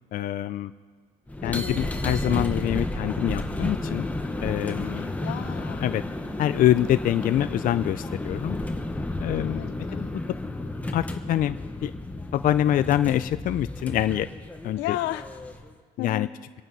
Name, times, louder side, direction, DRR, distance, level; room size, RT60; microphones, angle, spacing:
voice 1, 0.1-0.7 1.4-4.1 4.4-5.1 5.8-6.0 6.4-8.6 9.2-10.1 10.9-11.6 11.8-11.9 12.3-14.3 14.6-15.0 16.0-16.3, left 12 dB, 55° left, 11 dB, 0.5 m, -25 dB
sound 1, 1.3-15.7, left 1 dB, 10° left, 1.2 m, -32 dB
voice 2, 1.4-1.9 4.9-5.9 9.4-10.1 14.8-15.3 16.0-16.3, left 14 dB, 90° left, 12 dB, 0.8 m, -34 dB
25.0 x 9.0 x 5.5 m, 1.5 s
cardioid pair, 110°, 17 cm